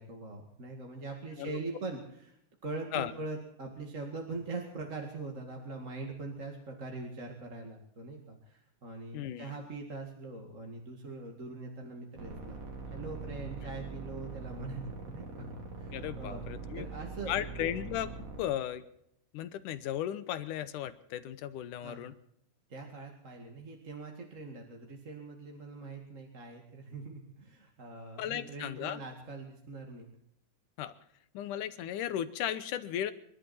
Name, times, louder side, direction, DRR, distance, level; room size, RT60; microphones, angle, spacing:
voice 1, 0.0-2.4 2.6-12.6 12.9-16.4 16.8-17.3 21.8-22.1 22.7-30.1, right 3 dB, 25° right, 1 dB, 2.0 m, -42 dB
voice 2, 9.1-9.5 15.9-16.9 17.3-18.1 18.4-18.8 19.3-22.1 28.2-29.0 30.8-30.9 31.3-33.1, left 11 dB, 80° left, 13 dB, 2.5 m, -35 dB
sound 1, 12.2-18.4, right 4 dB, 55° right, 4.1 m, -42 dB
27.5 x 12.0 x 4.3 m, 0.73 s
omnidirectional pair, 3.7 m